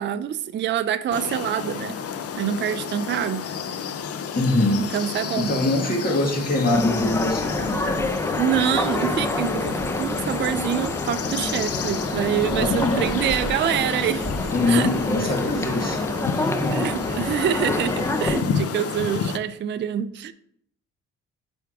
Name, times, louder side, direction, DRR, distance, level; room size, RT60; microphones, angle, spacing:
voice 1, 0.0-2.0 2.4-3.4 4.8-5.5 8.4-14.3 14.7-14.9 15.8-16.0 16.7-20.3, right 10 dB, 40° right, 11 dB, 0.4 m, -26 dB
sound 1, 1.1-19.4, left 7 dB, 50° left, 0.6 m, -31 dB
voice 2, 4.4-4.9 5.4-8.2 12.4-13.2 14.5-16.9, left 2 dB, 30° left, -1 dB, 2.1 m, -24 dB
sound 2, 6.7-18.4, left 1 dB, 10° left, 0.5 m, -27 dB
8.3 x 3.6 x 4.6 m, 0.70 s
cardioid pair, 90°, 30 cm